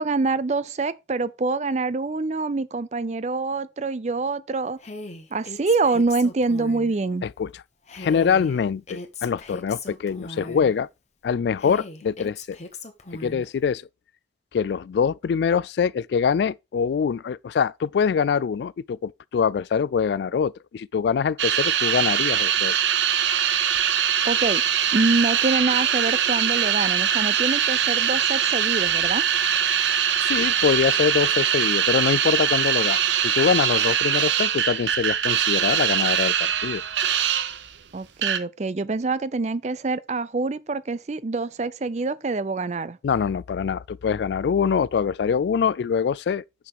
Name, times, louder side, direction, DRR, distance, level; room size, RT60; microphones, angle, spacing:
voice 1, 0.0-4.8 5.3-7.3 24.3-24.6 24.9-29.2 37.9-43.0, right 3 dB, 40° right, 0.4 m, -25 dB
Female speech woman speaking, 4.8-6.9 7.9-10.8 11.6-13.5, left 2 dB, 40° left, 1.1 m, -38 dB
voice 2, 7.2-7.6 8.0-10.9 11.2-12.6 13.2-13.8 14.5-22.7 30.2-36.8 43.0-46.4, left 6 dB, 70° left, 0.3 m, -24 dB
sound 1, 21.4-37.7 38.2-38.4, right 9 dB, 85° right, 0.8 m, -22 dB
6.1 x 5.9 x 4.7 m
head